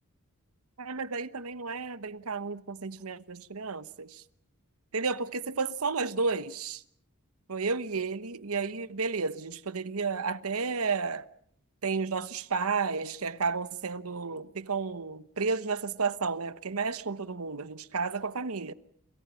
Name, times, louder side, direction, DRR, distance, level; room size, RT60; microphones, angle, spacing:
voice 1, 0.8-4.2 4.9-6.8 7.5-11.2 11.8-18.7, right 4 dB, 75° right, 1.0 m, -32 dB
29.5 x 27.5 x 5.7 m
head